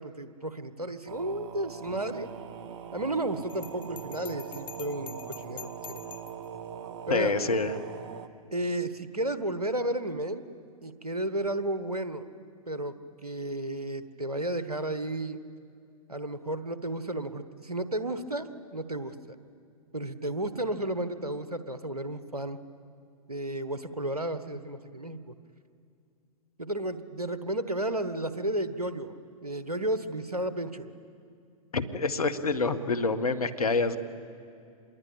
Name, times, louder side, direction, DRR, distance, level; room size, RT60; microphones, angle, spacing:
voice 1, 0.0-2.3 2.9-6.0 7.1-7.3 8.5-10.5 10.8-12.3 12.7-13.0 13.2-15.4 16.1-19.3 19.9-22.6 23.3-25.2 26.6-29.1 29.4-30.9, right 1 dB, 90° right, 11 dB, 1.4 m, -33 dB
sound 1, 1.1-8.3, right 7 dB, 50° right, 1.5 m, -42 dB
Bell, 3.5-6.5, left 11 dB, 25° left, 1.0 m, -46 dB
voice 2, 7.1-7.8 31.7-34.0, left 3 dB, 75° left, 11 dB, 1.7 m, -27 dB
27.0 x 21.5 x 8.7 m, 2.4 s
figure-of-eight pair, 100°, 19 cm